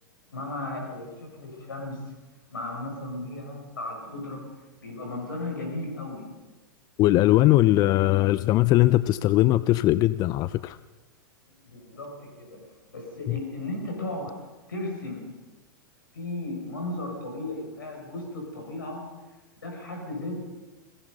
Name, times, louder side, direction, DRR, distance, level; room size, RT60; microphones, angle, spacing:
voice 1, 0.3-2.0 2.5-4.4 4.8-6.3 11.6-14.4 14.7-15.4 16.1-19.1 19.6-20.4, left 2 dB, 75° left, 2 dB, 6.5 m, -35 dB
voice 2, 7.0-10.8 13.3-13.4, left 16 dB, 35° left, 16 dB, 0.7 m, -20 dB
30.0 x 22.0 x 5.4 m, 1.2 s
figure-of-eight pair, 95°, 11 cm